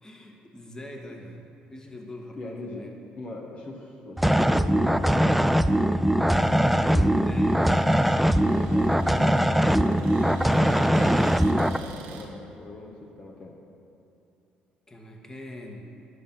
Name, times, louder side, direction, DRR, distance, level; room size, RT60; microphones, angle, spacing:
voice 1, 0.0-2.9 6.2-7.8 14.9-15.9, left 1 dB, 20° left, 1 dB, 1.6 m, -41 dB
voice 2, 2.3-5.5 8.4-13.6, left 2 dB, 45° left, -1 dB, 1.4 m, -41 dB
sound 1, 4.2-11.8, equal, 5° right, 0.4 m, -21 dB
Cupboard open or close, 5.6-12.3, right 4 dB, 90° right, 1.3 m, -45 dB
10.5 x 8.3 x 5.6 m, 2.9 s
supercardioid pair, 70°, 3 cm